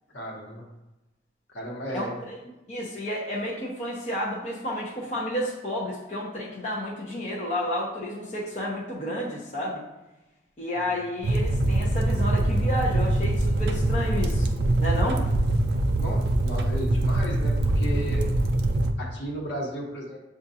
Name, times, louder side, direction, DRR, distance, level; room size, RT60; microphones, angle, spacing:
voice 1, 0.1-0.6 1.5-2.2 15.9-18.2 18.7-20.3, right 1 dB, 75° left, -2 dB, 1.2 m, -34 dB
voice 2, 1.9-2.4 2.7-9.8 10.6-14.5 14.8-15.2, left 1 dB, 40° left, -5 dB, 0.8 m, -31 dB
sound 1, 11.2-18.9, right 1 dB, 60° right, 0.4 m, -23 dB
7.2 x 2.5 x 2.7 m, 1.0 s
head